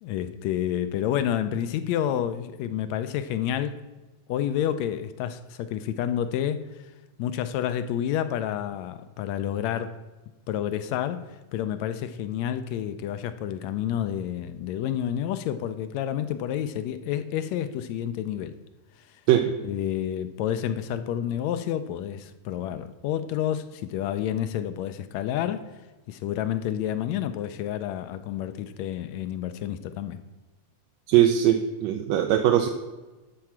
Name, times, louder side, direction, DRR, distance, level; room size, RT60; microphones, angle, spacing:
voice 1, 0.0-3.8 4.3-6.7 7.2-10.0 10.5-18.6 19.6-25.7 26.1-30.2, left 10 dB, 75° left, 11 dB, 1.7 m, -29 dB
voice 2, 31.1-32.7, right 11 dB, 75° right, 4 dB, 1.7 m, -20 dB
12.5 x 4.6 x 7.3 m, 1.1 s
omnidirectional pair, 3.6 m